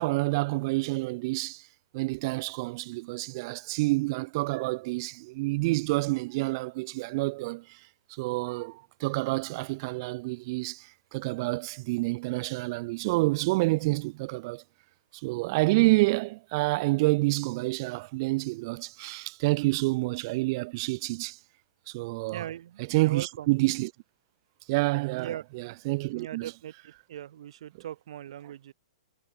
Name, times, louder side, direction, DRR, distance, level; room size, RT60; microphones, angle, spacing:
voice 1, 0.0-1.7 1.9-7.8 8.1-14.6 15.1-21.4 21.9-22.5 22.8-23.9 24.7-26.8, right 23 dB, 40° right, 0.4 m, -28 dB
voice 2, 22.3-23.5 25.2-25.4 25.7-25.8 26.1-28.7, right 11 dB, 65° right, 1.7 m, -40 dB
hypercardioid pair, 140°, 3 cm